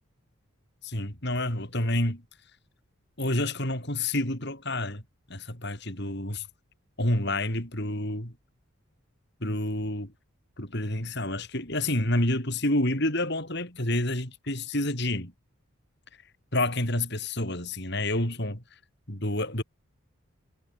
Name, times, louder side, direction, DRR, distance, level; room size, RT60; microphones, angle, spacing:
voice 1, 0.8-2.2 3.2-5.0 5.3-6.5 7.0-8.3 9.4-10.1 10.6-15.3 16.5-18.6 19.1-19.6, left 1 dB, 50° left, 6.2 m, -28 dB
head